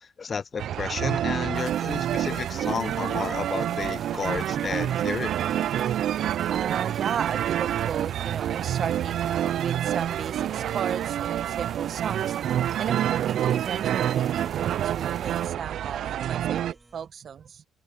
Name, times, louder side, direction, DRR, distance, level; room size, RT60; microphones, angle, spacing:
voice 1, 0.2-5.3, left 5 dB, 40° left, 0.6 m, -32 dB
sound 1, 0.6-16.7, right 11 dB, 75° right, 0.3 m, -27 dB
sound 2, 1.5-15.5, right 5 dB, 40° right, 2.3 m, -51 dB
sound 3, 3.5-17.1, right 2 dB, 20° right, 3.0 m, -58 dB
voice 2, 6.5-17.6, right 7 dB, 55° right, 1.3 m, -35 dB
cardioid pair, 90°, 0 cm